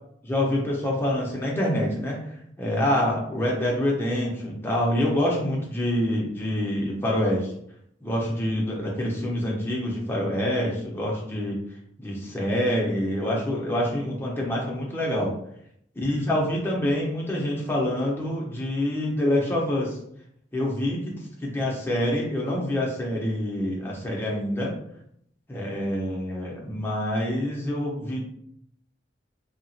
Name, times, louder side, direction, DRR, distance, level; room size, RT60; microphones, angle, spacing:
voice 1, 0.2-2.2 2.6-7.5 8.0-11.6 12.0-15.3 16.0-20.0 20.5-24.7 25.5-28.2, left 1 dB, 10° left, -3 dB, 0.6 m, -26 dB
2.8 x 2.4 x 2.6 m, 0.71 s
head